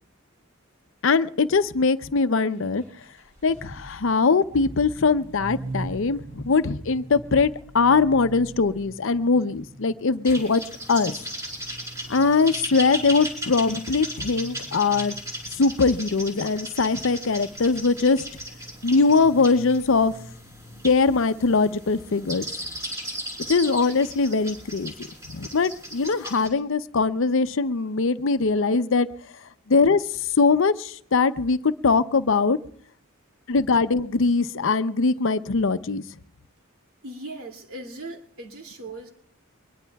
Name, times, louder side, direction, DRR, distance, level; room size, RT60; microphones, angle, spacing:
voice 1, 1.0-2.8 3.4-7.5 7.7-10.6 10.9-11.2 12.1-15.2 15.6-18.2 18.8-20.1 20.8-22.5 23.5-24.9 25.3-29.1 29.7-30.0 30.4-32.6 33.5-36.0, left 4 dB, 65° left, 13 dB, 0.6 m, -21 dB
sound 1, 2.5-20.8, right 2 dB, 60° right, 5.5 m, -43 dB
sound 2, 10.3-26.5, equal, 15° right, 4.1 m, -36 dB
voice 2, 37.0-39.1, right 2 dB, 85° right, 2 dB, 2.6 m, -38 dB
23.5 x 21.0 x 2.3 m, 0.65 s
head